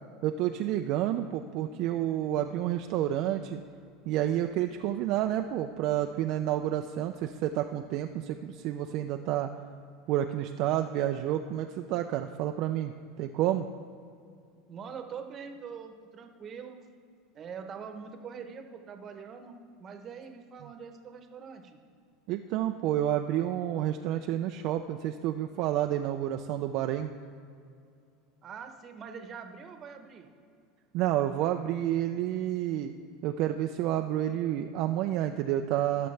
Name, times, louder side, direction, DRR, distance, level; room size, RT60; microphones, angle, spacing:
voice 1, 0.2-3.6 4.1-9.5 10.1-13.7 22.3-27.1 30.9-32.9 33.2-36.1, right 12 dB, 55° right, 6 dB, 0.4 m, -29 dB
voice 2, 14.7-16.8 17.3-21.8 28.4-30.3, right 6 dB, 35° right, 6 dB, 0.9 m, -43 dB
17.0 x 6.7 x 3.3 m, 2.4 s
supercardioid pair, 130°, 0 cm